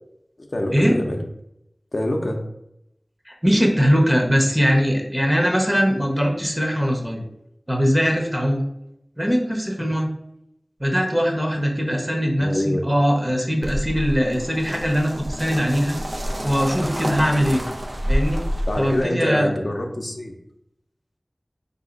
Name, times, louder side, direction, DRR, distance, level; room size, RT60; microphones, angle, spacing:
voice 1, 0.5-1.2 1.9-2.4 12.4-12.9 18.7-20.3, left 1 dB, 60° left, 2 dB, 0.6 m, -25 dB
voice 2, 3.3-7.2 7.7-8.6 9.2-10.1 10.8-16.0 16.4-17.6 18.1-18.4 18.8-19.5, equal, 15° right, 1 dB, 1.0 m, -21 dB
sound 1, 13.6-19.0, equal, 65° right, 0.6 m, -28 dB
4.1 x 2.8 x 3.9 m, 0.82 s
wide cardioid pair, 40°, 0 cm